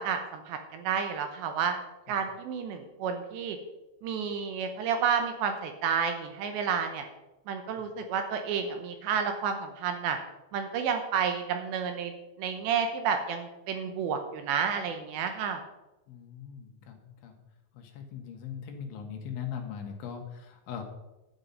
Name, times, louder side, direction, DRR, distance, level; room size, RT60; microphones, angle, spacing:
voice 1, 0.0-1.8 2.1-3.6 4.0-7.0 7.5-10.2 10.5-12.1 12.4-15.6, right 7 dB, 75° right, 6 dB, 2.8 m, -30 dB
voice 2, 16.1-17.4 17.7-20.8, left 8 dB, 75° left, 3 dB, 3.7 m, -40 dB
12.0 x 8.8 x 5.5 m, 1.0 s
omnidirectional pair, 5.7 m